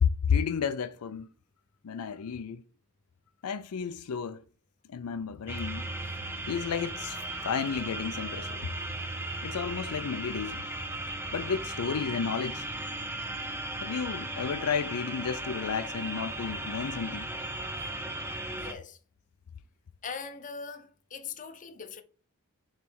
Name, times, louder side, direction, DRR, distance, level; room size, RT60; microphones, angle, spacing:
voice 1, 0.0-1.3 1.8-2.6 3.4-4.4 4.9-5.9 6.5-7.2 7.4-8.7 9.4-10.7 11.3-12.7 13.7-17.3, left 6 dB, 80° left, 0.4 m, -32 dB
sound 1, 5.5-18.7, right 1 dB, 10° right, 0.7 m, -36 dB
voice 2, 18.5-19.0 20.0-22.0, left 5 dB, 35° left, 0.7 m, -41 dB
6.9 x 3.2 x 4.5 m
head